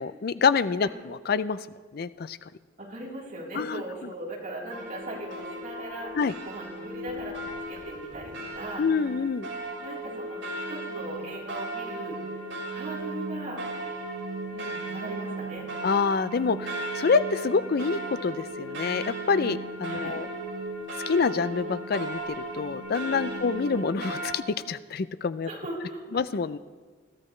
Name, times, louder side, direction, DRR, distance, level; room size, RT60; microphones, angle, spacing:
voice 1, 0.0-1.6 1.9-2.4 3.5-3.8 6.2-6.3 8.8-9.5 15.8-20.3 21.1-25.5 26.1-26.6, left 5 dB, 55° left, 14 dB, 0.4 m, -27 dB
voice 2, 2.8-6.1 6.4-7.4 7.7-8.8 9.8-10.4 10.7-12.3 12.7-13.6 14.5-15.7 19.9-20.2 23.3-23.5 25.4-26.3, right 1 dB, 45° right, -5 dB, 3.8 m, -39 dB
sound 1, 4.7-24.3, right 2 dB, 85° right, 3.6 m, -36 dB
21.5 x 13.5 x 3.2 m, 1.5 s
head